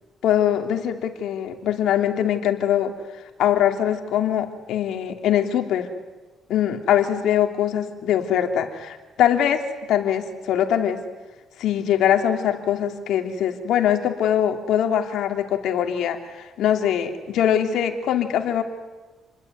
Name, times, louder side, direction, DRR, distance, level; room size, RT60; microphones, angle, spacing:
voice 1, 0.2-2.9 3.4-5.9 6.5-11.0 11.6-18.6, left 10 dB, 80° left, 6 dB, 3.0 m, -22 dB
29.0 x 21.0 x 9.4 m, 1.2 s
cardioid pair, 90°, 0 cm